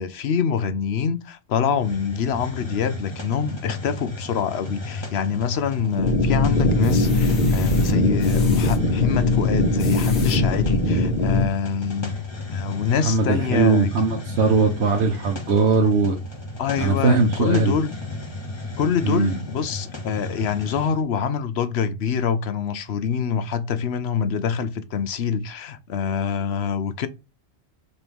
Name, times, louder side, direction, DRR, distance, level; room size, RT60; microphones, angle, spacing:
voice 1, 0.0-12.2 12.5-13.9 16.6-17.9 18.8-27.1, left 7 dB, 70° left, 1.0 m, -25 dB
Hiss, 1.7-21.0, left 2 dB, 25° left, 1.0 m, -34 dB
sound 1, 5.5-6.1 6.6-8.8 9.6-10.4 11.0-11.1 11.4-11.5, left 4 dB, 90° left, 1.5 m, -40 dB
sound 2, 6.0-11.5, left 2 dB, 50° left, 1.3 m, -20 dB
voice 2, 13.0-16.2 16.8-17.8 19.0-19.4, right 4 dB, 90° right, 1.3 m, -20 dB
4.5 x 4.3 x 5.2 m
omnidirectional pair, 1.1 m